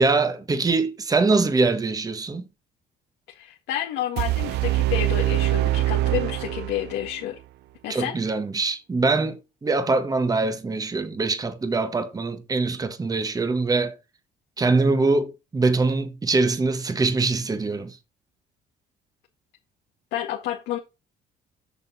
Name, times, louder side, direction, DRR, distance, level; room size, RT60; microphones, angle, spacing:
voice 1, 0.0-2.4 7.9-13.9 14.6-18.0, right 3 dB, 20° right, 1.4 m, -23 dB
voice 2, 3.3-7.4 7.8-8.2 20.1-20.8, left 12 dB, 90° left, 2.1 m, -30 dB
sound 1, 4.2-7.1, right 16 dB, 80° right, 0.4 m, -24 dB
8.4 x 6.5 x 4.2 m
cardioid pair, 110°, 17 cm